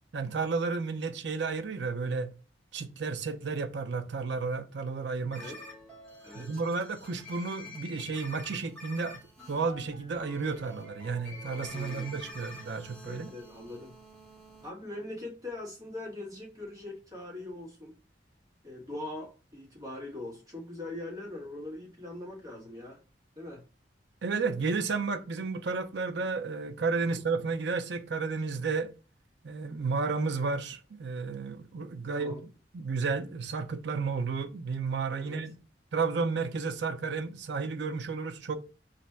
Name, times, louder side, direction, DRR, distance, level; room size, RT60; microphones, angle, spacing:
voice 1, 0.1-2.3 2.7-5.5 6.3-9.2 9.5-13.3 24.2-28.9 29.4-32.4 32.7-35.5 35.9-38.5, right 4 dB, 70° right, 0.5 m, -32 dB
sound 1, 5.3-14.7, left 1 dB, 5° left, 1.4 m, -47 dB
voice 2, 6.2-6.6 11.7-12.3 13.0-13.9 14.6-17.9 18.6-23.0 23.3-23.6 27.0-27.2 32.1-32.4 35.2-35.4, left 2 dB, 20° right, 1.2 m, -42 dB
3.2 x 2.5 x 4.4 m
head